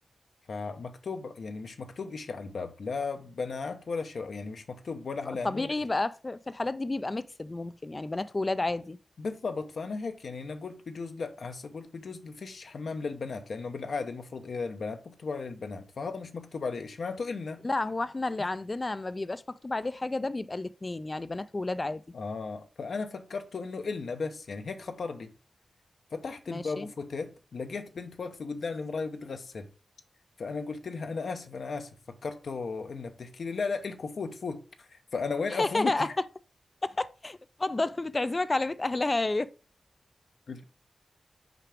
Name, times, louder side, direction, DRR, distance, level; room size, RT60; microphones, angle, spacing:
voice 1, 0.5-5.7 9.2-17.6 18.4-18.5 22.1-25.3 26.1-29.7 30.4-36.1 40.5-40.6, left 4 dB, 70° left, 0.7 m, -36 dB
voice 2, 5.4-9.0 17.6-22.0 26.5-26.9 35.6-36.3 36.8-39.5, left 2 dB, 30° left, 0.3 m, -31 dB
5.9 x 4.8 x 3.4 m
wide cardioid pair, 110°, 0 cm